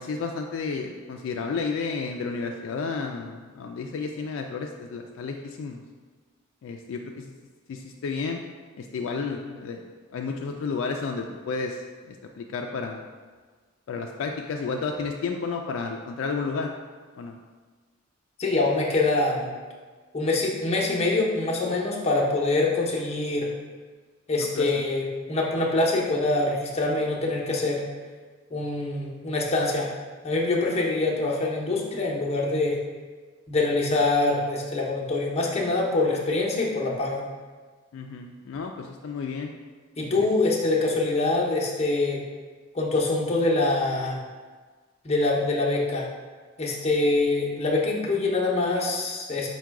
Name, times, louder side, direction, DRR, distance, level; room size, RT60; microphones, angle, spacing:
voice 1, 0.0-5.8 6.6-7.3 7.7-8.4 8.8-9.8 10.1-11.8 12.1-13.0 13.9-16.7 17.2-17.4 24.4-24.8 37.9-39.5 40.0-40.3, left 4 dB, 70° left, 2 dB, 0.3 m, -32 dB
voice 2, 18.4-19.5 20.1-23.5 24.3-27.8 28.5-29.9 30.2-32.8 33.5-37.2 40.0-42.2 42.7-44.2 45.0-46.0 46.6-49.5, left 2 dB, 30° left, -3 dB, 0.7 m, -24 dB
4.7 x 2.2 x 4.6 m, 1.4 s
head